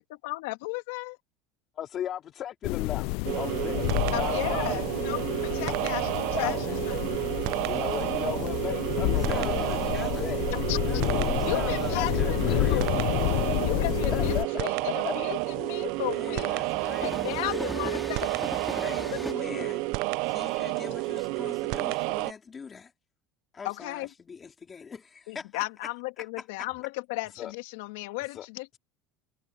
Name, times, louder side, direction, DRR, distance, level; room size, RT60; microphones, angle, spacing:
voice 1, 0.1-1.2 2.6-2.8 4.1-7.2 10.5-10.8 11.4-13.2 13.6-16.5 17.0-19.7 23.6-24.1 25.3-28.8, left 21 dB, 90° left, 2.8 m, -35 dB
voice 2, 1.8-3.1 3.4-4.8 5.5-5.6 6.3-6.7 7.6-9.7 10.2-10.4 12.0-12.1 12.5-12.6 14.1-15.1 27.4-27.5 28.3-28.5, left 10 dB, 35° left, 3.0 m, -35 dB
sound 1, 2.6-14.4, left 25 dB, 65° left, 0.4 m, -30 dB
sound 2, 3.2-22.3, right 24 dB, 65° right, 0.4 m, -30 dB
voice 3, 9.0-10.3 10.9-12.9 16.1-17.2 18.7-22.9 23.5-25.9 26.2-26.7, left 5 dB, 20° left, 2.7 m, -42 dB
Train, 10.2-19.3, left 1 dB, ahead, 2.3 m, -41 dB
cardioid pair, 155°, 0 cm